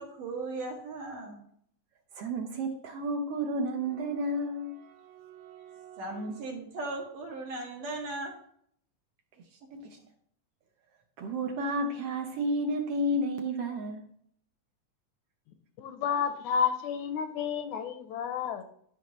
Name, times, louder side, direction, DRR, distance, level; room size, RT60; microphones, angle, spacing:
voice 1, 0.0-1.4 6.0-8.3, right 2 dB, 85° right, 3.5 m, -37 dB
voice 2, 2.1-6.3 9.7-9.9 11.2-14.0, right 1 dB, 65° right, 1.6 m, -32 dB
voice 3, 15.8-18.6, left 7 dB, 80° left, 1.9 m, -30 dB
12.5 x 5.8 x 3.1 m
omnidirectional pair, 3.6 m